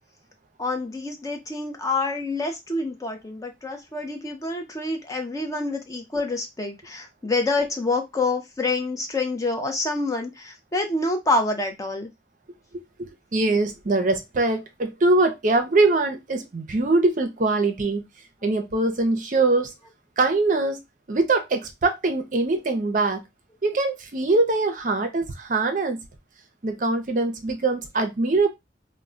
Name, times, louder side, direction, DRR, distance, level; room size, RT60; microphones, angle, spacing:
voice 1, 0.6-12.1, left 2 dB, 20° left, 0.4 m, -27 dB
voice 2, 13.0-18.0 18.4-19.7 20.2-20.8 21.1-23.2 23.6-26.0 26.6-28.5, right 2 dB, 45° right, 0.5 m, -22 dB
2.2 x 2.0 x 3.7 m
head